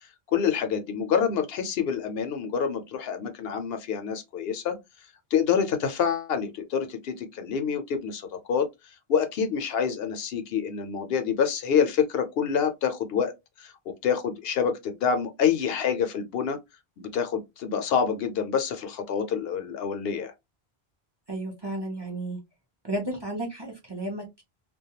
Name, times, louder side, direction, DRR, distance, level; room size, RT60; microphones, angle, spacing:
voice 1, 0.3-4.8 5.3-8.7 9.1-13.3 13.6-13.7 14.0-16.6 17.0-20.3, left 7 dB, 75° left, 0.8 m, -27 dB
voice 2, 21.3-22.4 22.8-24.4, right 1 dB, 30° right, 0.6 m, -33 dB
2.2 x 2.2 x 2.8 m
omnidirectional pair, 1.0 m